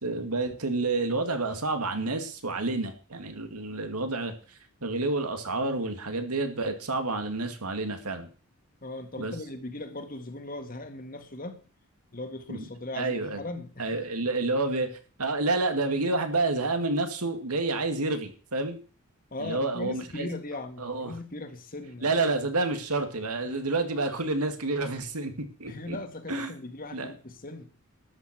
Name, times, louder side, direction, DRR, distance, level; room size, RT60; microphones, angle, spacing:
voice 1, 0.0-4.3 4.8-8.3 9.2-9.3 12.5-12.7 13.0-13.4 13.8-18.8 19.4-20.3 20.8-21.1 22.0-25.3 25.6-26.0 26.3-26.5 26.9-27.1, right 3 dB, 90° right, 7 dB, 2.3 m, -29 dB
voice 2, 8.8-11.7 12.1-13.9 19.3-22.3 25.7-27.7, left 2 dB, 40° left, 7 dB, 1.8 m, -39 dB
13.0 x 9.5 x 6.1 m, 0.39 s
head